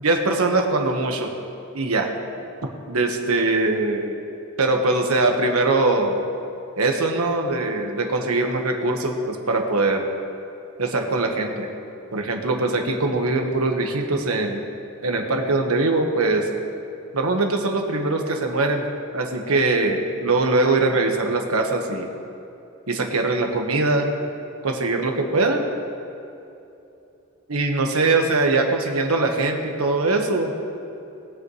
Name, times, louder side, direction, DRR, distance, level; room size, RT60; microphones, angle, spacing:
voice 1, 0.0-1.3 1.7-2.1 2.9-4.1 4.6-6.2 6.8-10.0 10.8-11.7 12.1-14.6 15.0-16.5 17.1-18.8 19.1-22.1 22.9-24.1 24.6-25.6 27.5-30.5, right 2 dB, 80° right, 3 dB, 1.4 m, -22 dB
21.0 x 7.9 x 3.2 m, 2.8 s
head